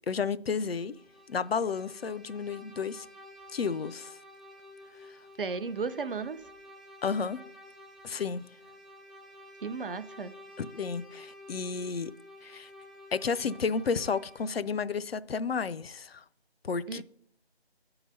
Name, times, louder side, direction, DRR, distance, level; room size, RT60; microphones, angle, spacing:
voice 1, 0.1-1.0 1.3-3.1 3.5-4.2 5.0-5.2 7.0-7.4 8.0-8.4 10.6-12.1 12.4-12.7 13.1-16.2 16.6-17.0, left 5 dB, 65° left, 0.4 m, -32 dB
Bowed string instrument, 0.8-14.7, left 1 dB, ahead, 0.3 m, -51 dB
voice 2, 5.4-6.4 9.6-10.3 16.9-17.0, right 4 dB, 55° right, 0.6 m, -34 dB
9.4 x 3.9 x 6.5 m
figure-of-eight pair, 165°, 32 cm